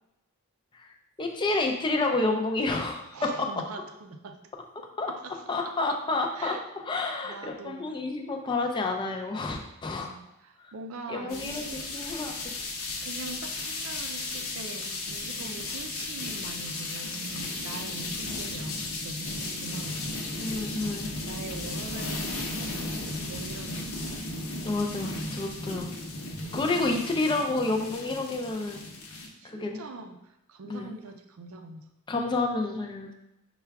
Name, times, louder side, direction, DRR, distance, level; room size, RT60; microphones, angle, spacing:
voice 1, 0.7-3.3 5.0-5.1 5.5-6.6 6.9-10.1 10.6-10.7 11.1-11.6 11.9-12.3 15.4-15.6 20.4-21.1 24.6-25.9 26.5-28.8 29.4-29.8 30.7-30.9 32.1-33.1, left 2 dB, 20° left, 2 dB, 0.4 m, -29 dB
voice 2, 3.1-4.4 5.1-6.0 6.3-7.0 7.2-7.8 9.9-12.3 13.0-20.1 21.1-24.1 29.4-31.9, right 3 dB, 75° right, 6 dB, 0.5 m, -43 dB
sound 1, 11.3-29.3, left 2 dB, 70° left, 0.8 m, -35 dB
5.6 x 2.3 x 3.4 m, 0.87 s
head